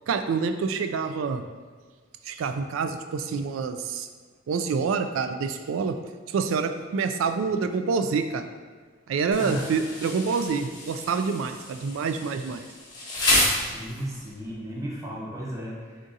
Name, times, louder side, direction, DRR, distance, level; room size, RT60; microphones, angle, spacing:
voice 1, 0.1-1.4 2.3-4.1 4.5-6.0 6.3-8.4 9.1-12.7, right 5 dB, 80° right, 7 dB, 0.3 m, -27 dB
Insect, 9.3-14.3, left 1 dB, 20° left, 1.0 m, -29 dB
voice 2, 9.4-9.7 13.5-16.0, equal, 15° right, -4 dB, 0.8 m, -35 dB
3.6 x 2.7 x 3.8 m, 1.5 s
head